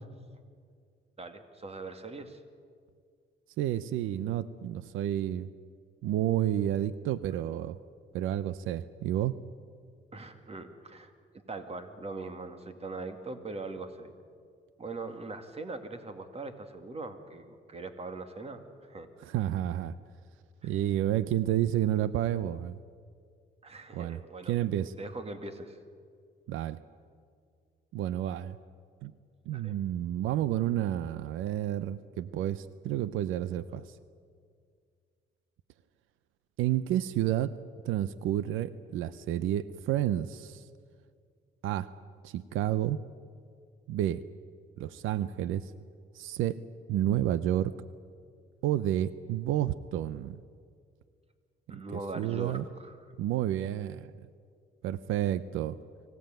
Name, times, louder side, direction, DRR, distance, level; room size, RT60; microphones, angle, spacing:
voice 1, 1.2-2.4 10.1-14.1 14.8-19.1 20.6-20.7 23.6-24.6 25.0-25.8 29.5-29.7 51.7-53.1, right 3 dB, 30° right, 7 dB, 2.3 m, -41 dB
voice 2, 3.6-5.5 6.0-7.8 8.1-9.3 19.2-19.9 20.6-22.8 23.9-24.2 24.5-24.9 26.5-26.8 27.9-28.6 29.0-29.1 29.5-33.8 36.6-37.5 37.8-40.6 41.6-41.9 42.2-43.0 43.9-44.2 44.8-45.7 46.1-46.6 46.9-47.7 48.6-50.4 52.2-52.6 53.2-54.1 54.8-55.8, right 12 dB, 90° right, 16 dB, 0.6 m, -30 dB
24.0 x 16.5 x 9.1 m, 2.1 s
cardioid pair, 90°, 20 cm